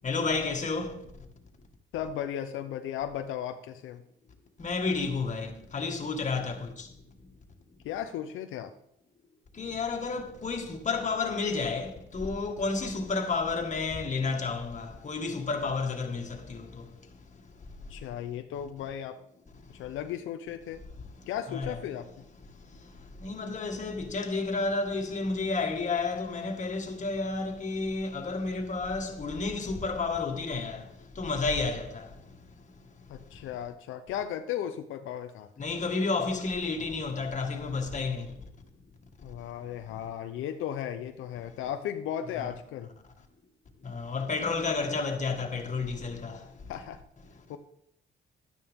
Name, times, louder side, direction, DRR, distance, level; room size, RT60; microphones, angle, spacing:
voice 1, 0.0-0.9 4.6-6.6 9.6-16.8 21.5-21.8 23.2-30.8 31.2-32.0 35.6-38.3 42.4-42.5 43.9-46.3, left 4 dB, 40° left, 1.9 m, -31 dB
voice 2, 1.9-4.0 7.8-8.7 17.9-19.2 19.8-20.8 21.3-22.1 33.1-35.5 39.2-42.9 46.7-47.0 47.5-47.6, left 10 dB, 85° left, 0.7 m, -35 dB
12.0 x 9.6 x 3.6 m
cardioid pair, 90°, 20 cm